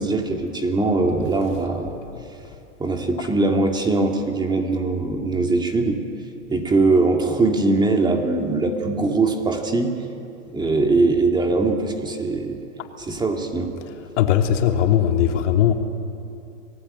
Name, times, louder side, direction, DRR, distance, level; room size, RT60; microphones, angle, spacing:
voice 1, 0.0-2.0 2.8-6.0 6.5-10.0 10.5-12.6 13.0-13.7, right 3 dB, 10° right, 2.3 m, -21 dB
voice 2, 14.2-15.7, left 10 dB, 65° left, 3.1 m, -19 dB
29.0 x 20.5 x 9.9 m
supercardioid pair, 150°, 40 cm